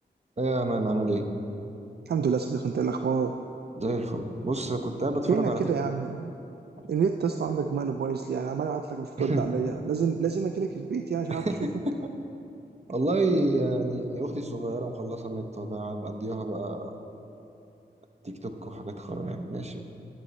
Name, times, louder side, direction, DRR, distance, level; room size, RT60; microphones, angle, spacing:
voice 1, 0.4-1.2 3.8-5.6 9.2-9.5 11.3-12.1 12.9-16.9 18.2-19.8, right 2 dB, 35° right, 6 dB, 0.9 m, -29 dB
voice 2, 2.1-3.4 5.3-6.3 6.9-11.7, right 6 dB, 65° right, 6 dB, 0.4 m, -28 dB
11.5 x 7.4 x 4.1 m, 2.9 s
cardioid pair, 40°, 18 cm